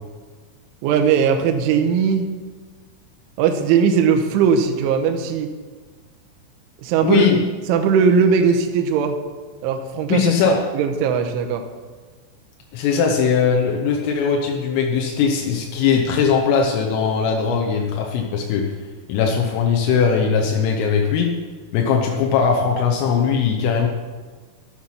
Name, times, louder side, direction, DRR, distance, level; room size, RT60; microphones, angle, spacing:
voice 1, 0.8-2.3 3.4-5.5 6.8-7.3 7.7-9.2 9.6-10.2 10.7-11.6, right 6 dB, 75° right, 5 dB, 3.1 m, -18 dB
voice 2, 7.0-7.4 10.1-10.6 12.7-18.7 19.1-21.3 21.7-23.9, left 6 dB, 80° left, 1 dB, 3.5 m, -19 dB
12.0 x 8.0 x 5.8 m, 1.4 s
omnidirectional pair, 5.9 m